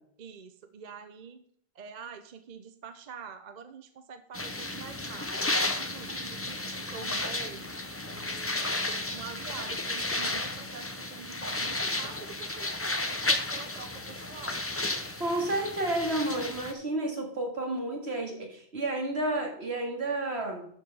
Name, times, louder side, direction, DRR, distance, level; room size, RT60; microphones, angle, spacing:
voice 1, 0.2-1.4 1.7-7.7 8.1-14.6, right 6 dB, 45° right, 9 dB, 0.8 m, -46 dB
sound 1, 4.3-16.7, left 2 dB, 15° left, 0.6 m, -33 dB
voice 2, 15.2-20.7, right 1 dB, 75° right, 1 dB, 2.3 m, -31 dB
11.5 x 4.9 x 5.5 m, 0.64 s
omnidirectional pair, 1.1 m